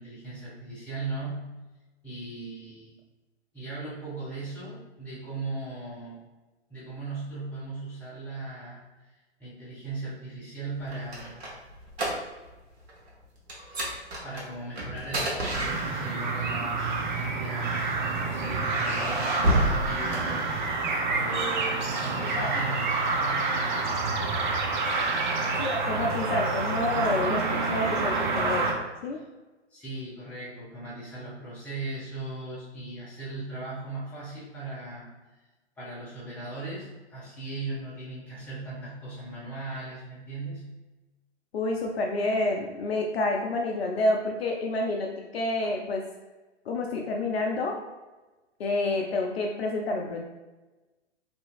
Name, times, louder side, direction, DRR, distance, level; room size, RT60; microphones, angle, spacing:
voice 1, 0.0-1.5 2.0-3.0 3.5-6.2 6.7-8.8 9.4-11.4 14.2-20.6 21.1-23.5 29.1-29.2 29.7-35.1 35.8-40.6, right 2 dB, 5° left, -10 dB, 1.0 m, -38 dB
sound 1, 10.7-12.6 12.8-13.1 13.5-16.3 17.2-18.0 18.6-20.9, right 1 dB, 65° right, 0.9 m, -30 dB
sound 2, 15.5-28.7, right 3 dB, 45° right, 0.4 m, -28 dB
voice 2, 22.2-22.5 25.6-29.2 41.5-46.0 46.7-47.8 48.6-50.2, left 2 dB, 60° left, 1 dB, 0.4 m, -28 dB
2.8 x 2.6 x 2.3 m, 1.2 s
figure-of-eight pair, 110°, 34 cm